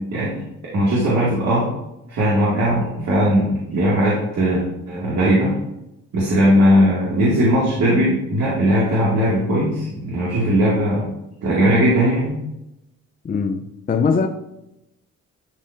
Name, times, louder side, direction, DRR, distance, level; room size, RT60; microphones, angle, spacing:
voice 1, 0.7-1.7 2.1-5.5 6.1-11.1 11.4-12.3, equal, 60° right, 2.2 m, -18 dB
voice 2, 13.2-14.3, left 5 dB, 30° left, 0.6 m, -21 dB
11.5 x 4.1 x 2.6 m
cardioid pair, 90°, 30 cm